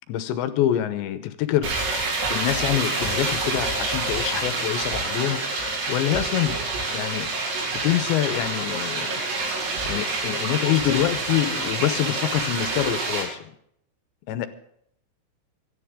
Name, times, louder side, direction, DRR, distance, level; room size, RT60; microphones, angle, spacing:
voice 1, 0.1-1.7 2.3-6.6 6.9-7.3 7.7-9.2 9.9-13.5 14.3-14.5, left 12 dB, 75° left, 11 dB, 2.8 m, -25 dB
sound 1, 1.6-13.2, right 3 dB, 80° right, 7.5 m, -27 dB
27.0 x 10.5 x 3.7 m, 0.71 s
omnidirectional pair, 5.9 m